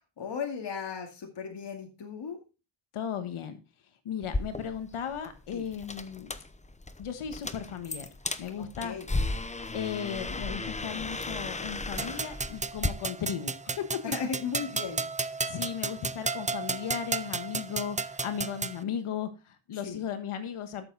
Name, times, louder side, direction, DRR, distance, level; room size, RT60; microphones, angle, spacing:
voice 1, 0.2-2.4 5.5-5.6 8.6-9.1 14.0-15.1 19.8-20.0, left 6 dB, 55° left, 3 dB, 2.3 m, -36 dB
voice 2, 2.9-3.6 4.0-6.3 7.0-8.1 8.4-9.0 9.7-14.0 15.4-20.8, left 8 dB, 80° left, 9 dB, 1.5 m, -36 dB
sound 1, 4.2-12.9, left 2 dB, 15° left, 0.8 m, -35 dB
sound 2, 12.0-18.8, right 4 dB, 15° right, 0.4 m, -33 dB
13.0 x 7.3 x 4.0 m, 0.31 s
cardioid pair, 95°, 50 cm